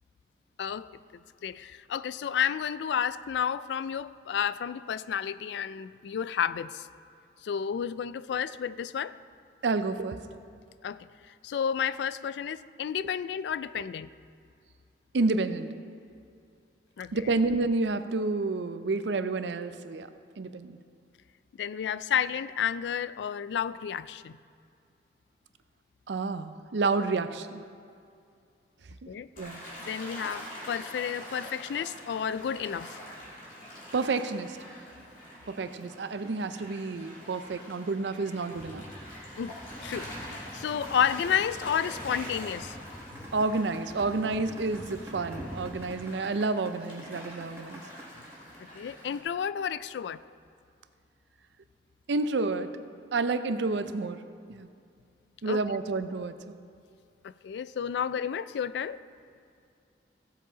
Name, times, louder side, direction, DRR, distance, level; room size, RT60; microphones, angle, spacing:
voice 1, 0.6-0.9 1.4-6.9 7.4-9.2 10.8-14.1 17.0-17.3 21.5-24.4 29.1-29.3 29.8-33.0 39.4-42.8 48.7-50.2 55.5-55.6 57.2-59.0, left 8 dB, 75° left, 16 dB, 0.3 m, -31 dB
voice 2, 9.6-10.2 15.1-15.7 17.1-20.1 20.4-20.8 26.1-27.6 29.0-29.1 29.4-29.6 33.9-34.6 35.5-38.8 43.3-47.8 52.1-52.7 53.1-54.2 54.5-54.7 55.4-56.6, right 3 dB, 85° right, 11 dB, 0.5 m, -29 dB
Gull seagull / Waves surf, 29.4-49.2, equal, 50° left, 2.7 m, -45 dB
sound 1, 38.5-45.9, equal, 10° left, 0.7 m, -45 dB
sound 2, 43.0-49.0, equal, 15° right, 1.1 m, -48 dB
16.0 x 7.5 x 3.9 m, 2.4 s
head